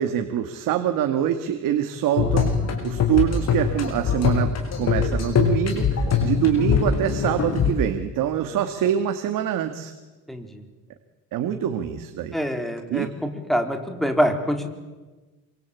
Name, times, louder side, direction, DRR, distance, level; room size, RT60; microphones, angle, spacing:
voice 1, 0.0-2.5 2.8-9.9 11.3-12.4 12.9-13.1, right 10 dB, 80° right, 7 dB, 2.1 m, -25 dB
sound 1, 2.2-7.7, left 6 dB, 50° left, 7.2 m, -22 dB
voice 2, 10.3-10.6 12.3-13.1 13.5-14.7, equal, ahead, 4 dB, 4.1 m, -24 dB
28.0 x 25.0 x 8.5 m, 1.2 s
cardioid pair, 120°, 32 cm